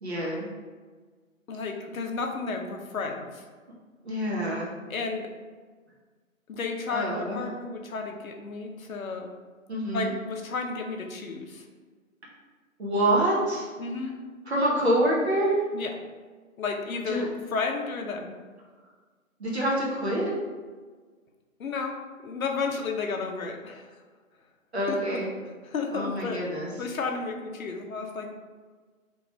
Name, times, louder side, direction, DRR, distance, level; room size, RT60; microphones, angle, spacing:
voice 1, 0.0-0.5 4.0-4.7 6.9-7.4 9.7-10.1 12.8-13.7 14.5-15.6 17.1-17.3 19.4-20.3 24.7-25.3 25.9-26.7, right 1 dB, 50° right, -4 dB, 0.8 m, -26 dB
voice 2, 1.5-3.5 4.9-5.3 6.5-9.3 9.9-11.6 13.8-14.1 15.7-15.9 16.6-18.3 21.6-22.0 22.2-23.9 24.9-25.2 25.6-26.4 26.8-28.3, left 4 dB, 75° left, 3 dB, 0.6 m, -32 dB
3.0 x 2.9 x 2.2 m, 1.5 s
figure-of-eight pair, 165°, 42 cm